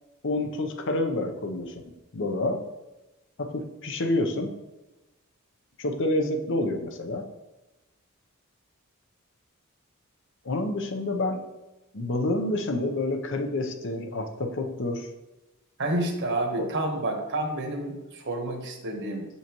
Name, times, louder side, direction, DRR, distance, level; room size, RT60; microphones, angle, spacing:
voice 1, 0.2-2.6 3.4-4.5 5.8-7.2 10.4-11.4 11.9-15.1 16.6-16.7, left 2 dB, 60° left, 5 dB, 0.7 m, -28 dB
voice 2, 15.8-19.2, right 1 dB, 55° right, 3 dB, 1.1 m, -29 dB
6.9 x 5.6 x 3.0 m, 1.0 s
head